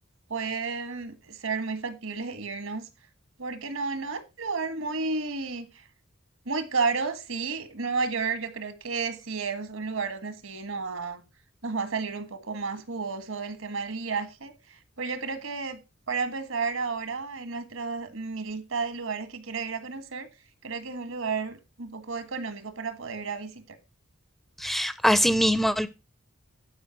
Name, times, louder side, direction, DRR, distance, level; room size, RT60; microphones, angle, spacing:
voice 1, 0.3-2.9 3.4-5.7 6.5-11.2 11.6-15.8 16.1-20.3 20.6-23.8, right 4 dB, 80° right, 1.7 m, -32 dB
voice 2, 24.6-25.9, equal, ahead, 0.4 m, -22 dB
12.0 x 5.1 x 5.9 m
head